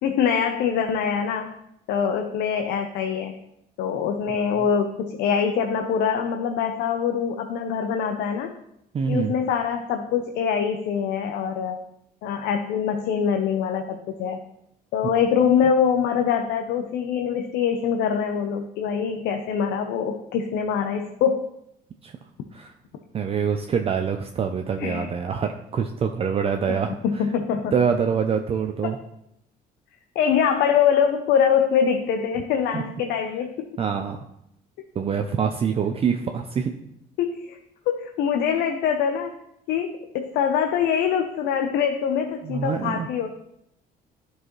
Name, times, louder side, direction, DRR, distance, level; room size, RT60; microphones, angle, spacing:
voice 1, 0.0-1.5 1.9-3.3 3.8-8.5 9.1-11.8 12.2-14.4 14.9-21.5 24.8-25.1 26.7-26.8 27.0-27.7 30.2-33.7 37.2-37.6 37.9-39.3 39.7-43.3, left 7 dB, 80° left, 5 dB, 0.6 m, -24 dB
voice 2, 8.9-9.3 22.0-22.1 22.5-22.7 23.1-27.2 27.7-29.0 32.7-32.8 33.8-34.2 35.0-36.7 42.4-43.1, right 6 dB, 35° right, 5 dB, 0.5 m, -25 dB
11.0 x 4.7 x 3.0 m, 0.79 s
cardioid pair, 110°, 17 cm